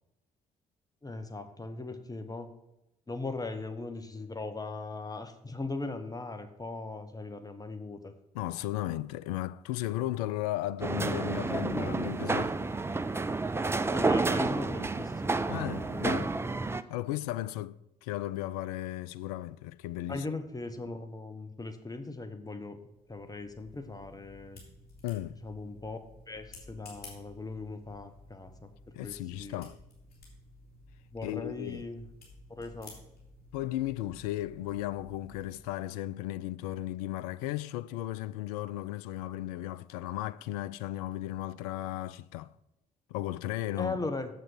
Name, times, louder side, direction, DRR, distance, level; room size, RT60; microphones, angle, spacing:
voice 1, 1.0-2.5 3.1-8.1 13.8-16.1 20.1-22.8 23.1-24.6 25.4-26.0 26.3-28.7 29.0-29.6 31.1-32.0 32.5-32.9 43.8-44.3, left 3 dB, 20° left, 1.0 m, -39 dB
voice 2, 8.3-12.7 15.5-16.4 16.9-20.2 25.0-25.4 29.0-29.8 31.2-31.9 33.5-42.5 43.1-44.0, left 14 dB, 65° left, 0.4 m, -35 dB
sound 1, 10.8-16.8, right 3 dB, 10° right, 0.5 m, -30 dB
sound 2, 22.8-35.6, left 2 dB, 50° left, 3.8 m, -54 dB
7.8 x 7.6 x 6.0 m
figure-of-eight pair, 45°, 21 cm